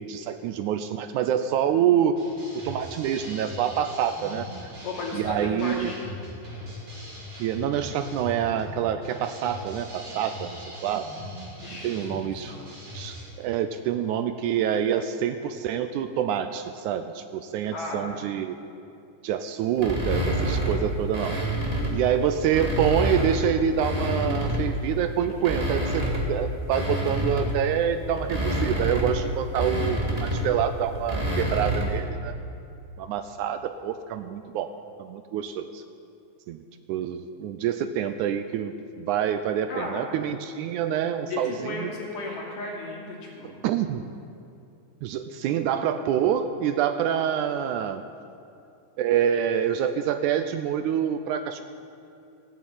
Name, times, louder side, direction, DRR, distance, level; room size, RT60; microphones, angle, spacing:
voice 1, 0.0-2.2 2.7-4.5 5.1-5.9 7.4-11.1 11.7-12.5 12.9-18.6 19.2-21.4 21.9-32.3 33.0-34.7 35.0-35.8 36.5-36.6 36.9-41.9 43.4-44.0 45.0-48.0 49.0-51.6, right 9 dB, 80° right, 9 dB, 1.9 m, -26 dB
sound 1, 2.1-13.2, equal, 40° right, 4.0 m, -40 dB
voice 2, 4.8-6.1 11.6-12.0 12.3-12.7 17.6-18.1 39.7-40.2 41.3-43.6, left 2 dB, 75° left, -3 dB, 4.3 m, -35 dB
sound 2, 19.8-22.0 22.4-24.8 25.3-32.0, equal, 15° right, 1.2 m, -28 dB
15.5 x 8.9 x 8.6 m, 2.6 s
omnidirectional pair, 3.8 m